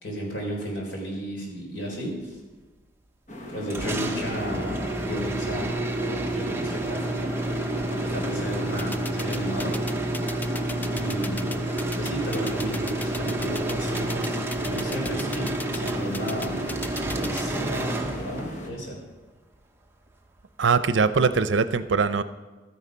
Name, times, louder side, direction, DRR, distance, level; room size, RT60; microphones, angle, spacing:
voice 1, 0.0-2.4 3.5-5.7 6.0-7.4 7.9-9.7 10.9-16.7 17.1-19.0, equal, 75° left, -1 dB, 3.9 m, -34 dB
sound 1, 3.3-18.7, equal, 40° left, 1.5 m, -37 dB
sound 2, 3.7-18.6, right 1 dB, 15° right, 0.8 m, -29 dB
sound 3, 8.8-17.4, left 2 dB, 10° left, 0.3 m, -36 dB
voice 2, 20.6-22.2, right 5 dB, 80° right, 12 dB, 0.6 m, -21 dB
12.5 x 9.8 x 5.2 m, 1.2 s
head